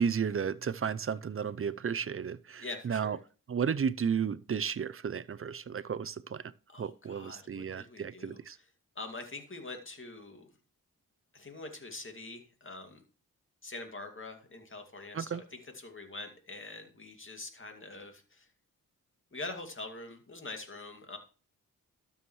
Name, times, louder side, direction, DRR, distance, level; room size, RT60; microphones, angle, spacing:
voice 1, 0.0-3.2 3.5-6.4 6.8-8.6 15.1-15.4, right 7 dB, 40° right, 0.6 m, -33 dB
voice 2, 2.6-3.2 6.7-8.7 9.0-10.5 11.3-13.0 13.6-18.5 19.3-21.2, left 2 dB, 35° left, 2.4 m, -44 dB
12.5 x 7.1 x 3.1 m
cardioid pair, 65°, 34 cm